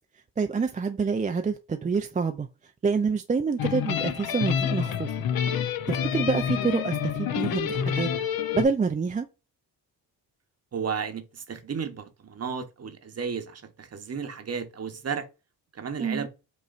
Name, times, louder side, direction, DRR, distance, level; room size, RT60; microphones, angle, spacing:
voice 1, 0.4-2.5 2.8-5.1 5.9-8.1 8.5-9.3 16.0-16.3, right 5 dB, 20° right, 0.4 m, -27 dB
sound 1, 3.6-8.6, left 8 dB, 60° left, 0.7 m, -28 dB
voice 2, 10.7-15.3 15.7-16.3, right 6 dB, 35° right, 0.9 m, -33 dB
5.4 x 3.1 x 2.5 m
cardioid pair, 85°, 41 cm